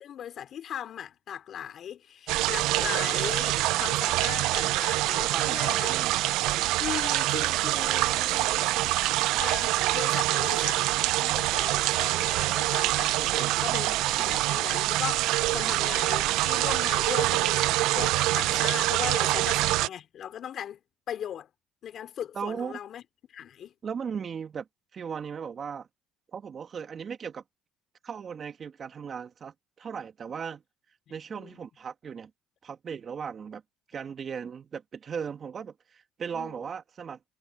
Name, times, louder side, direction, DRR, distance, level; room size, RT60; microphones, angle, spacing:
voice 1, 0.0-6.0 6.8-9.0 9.4-20.8 21.1-21.5 21.8-23.0 23.3-23.7 31.3-31.6 36.3-36.6, left 9 dB, 55° left, 3.2 m, -38 dB
sound 1, 2.3-19.9, right 17 dB, 75° right, 0.6 m, -25 dB
voice 2, 5.1-6.1 13.2-14.4 19.4-19.5 22.3-22.8 23.8-24.7 24.9-25.9 26.3-27.4 28.0-30.6 31.1-32.3 32.6-33.6 33.9-37.3, right 7 dB, 40° right, 2.3 m, -37 dB
supercardioid pair, 90°, 0 cm